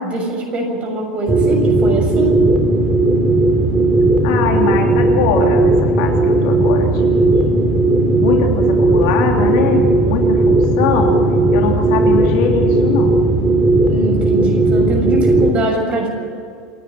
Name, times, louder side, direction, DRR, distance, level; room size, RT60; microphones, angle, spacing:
voice 1, 0.0-2.5 13.9-16.1, right 1 dB, 35° right, 2 dB, 6.8 m, -22 dB
sound 1, 1.3-15.5, right 2 dB, 20° right, 3.0 m, -15 dB
voice 2, 4.2-7.6 8.2-11.2 11.5-13.2, left 6 dB, 70° left, 2 dB, 3.2 m, -21 dB
27.5 x 10.0 x 9.6 m, 2.3 s
hypercardioid pair, 90°, 4 cm